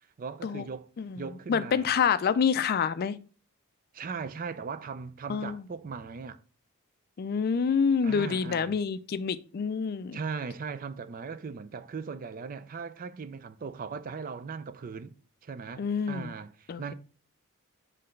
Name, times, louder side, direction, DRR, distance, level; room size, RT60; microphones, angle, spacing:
voice 1, 0.2-0.9 1.2-1.9 3.9-6.4 8.0-8.7 10.1-15.1 15.4-16.9, right 5 dB, 40° right, 0.4 m, -38 dB
voice 2, 1.0-3.1 5.3-5.6 7.2-10.2 15.8-16.3 16.7-16.9, left 6 dB, 45° left, 0.3 m, -27 dB
5.8 x 3.3 x 5.1 m
head